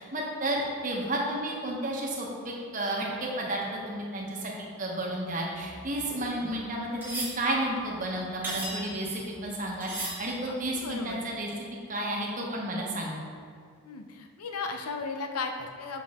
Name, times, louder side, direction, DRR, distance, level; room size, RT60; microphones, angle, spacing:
voice 1, 0.0-4.5 4.8-11.5 11.9-13.2, right 1 dB, 35° right, -2 dB, 1.0 m, -32 dB
sound 1, 5.5-9.5 9.8-10.7 11.2-11.3, right 1 dB, 10° right, 1.1 m, -38 dB
voice 2, 10.5-11.3 13.8-16.0, left 4 dB, 90° left, 4 dB, 0.6 m, -36 dB
6.4 x 5.4 x 3.6 m, 2.3 s
head